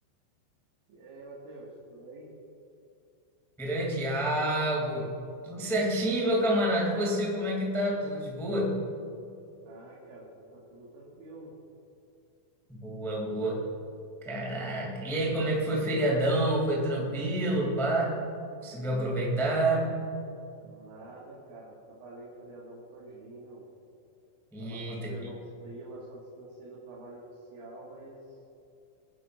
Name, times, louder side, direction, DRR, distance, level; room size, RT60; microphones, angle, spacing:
voice 1, 0.9-2.3 9.6-11.5 20.6-23.6 24.6-28.4, right 1 dB, 70° right, -7 dB, 4.1 m, -47 dB
voice 2, 3.6-5.2 5.4-8.9 12.7-13.7 14.2-18.2 18.6-20.0 24.5-25.1, right 1 dB, ahead, -3 dB, 0.5 m, -28 dB
22.5 x 10.5 x 2.6 m, 2.6 s
omnidirectional pair, 5.8 m